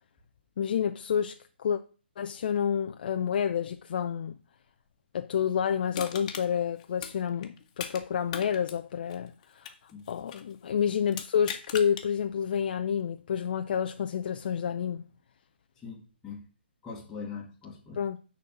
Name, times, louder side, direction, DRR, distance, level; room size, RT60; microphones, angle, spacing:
voice 1, 0.6-1.8 2.2-4.3 5.1-9.7 10.1-15.0 18.0-18.2, left 8 dB, 55° left, 0.7 m, -29 dB
Crushing, 5.9-8.0 8.3-10.5 11.1-12.1 12.5-12.6, left 8 dB, 35° left, 1.5 m, -39 dB
voice 2, 15.8-16.4 16.8-18.0, left 5 dB, 10° left, 1.8 m, -42 dB
10.5 x 4.3 x 7.5 m
hypercardioid pair, 145°, 6 cm